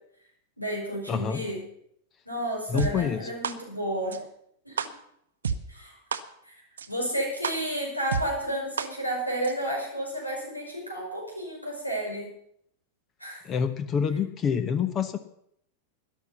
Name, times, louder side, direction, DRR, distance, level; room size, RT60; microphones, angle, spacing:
voice 1, 0.6-1.6 2.3-4.2 4.7-4.8 5.7-6.0 6.4-6.6 6.9-12.3 13.2-13.4, right 1 dB, 90° left, -1 dB, 5.5 m, -31 dB
voice 2, 1.1-1.4 2.7-3.3 13.4-15.2, left 7 dB, 30° left, 11 dB, 1.0 m, -27 dB
sound 1, 2.8-2.9 3.4-3.5 4.1-4.2 4.8-4.9 5.4-5.6 6.1-6.2 6.8-6.9 7.4-7.5 8.1-8.2 8.8-8.9 9.4-9.5, right 6 dB, 70° right, 0.9 m, -28 dB
13.0 x 11.0 x 6.9 m, 0.71 s
figure-of-eight pair, 90°, 0 cm